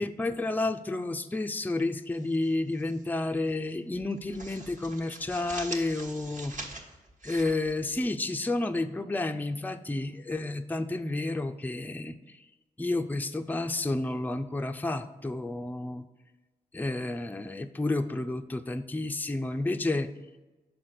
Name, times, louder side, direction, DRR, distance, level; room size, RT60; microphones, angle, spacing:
voice 1, 0.0-6.8 7.2-12.4 12.8-16.1 16.7-20.1, left 2 dB, 10° left, 7 dB, 0.5 m, -31 dB
sound 1, 2.1-3.0 3.3-3.5 3.9-8.4, right 2 dB, 50° right, 1.3 m, -44 dB
5.8 x 4.3 x 6.4 m, 1.2 s
supercardioid pair, 40°, 17 cm